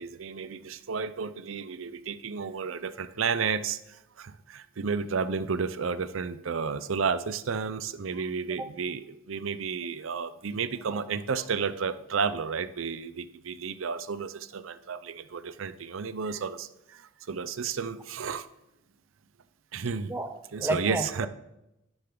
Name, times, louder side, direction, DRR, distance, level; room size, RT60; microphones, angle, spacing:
voice 1, 0.0-3.8 4.2-17.0 17.3-18.4 19.7-20.1 20.5-21.3, right 5 dB, 85° right, 13 dB, 0.6 m, -32 dB
voice 2, 20.1-21.3, right 1 dB, 10° right, 8 dB, 0.6 m, -32 dB
11.5 x 6.8 x 3.8 m, 0.88 s
head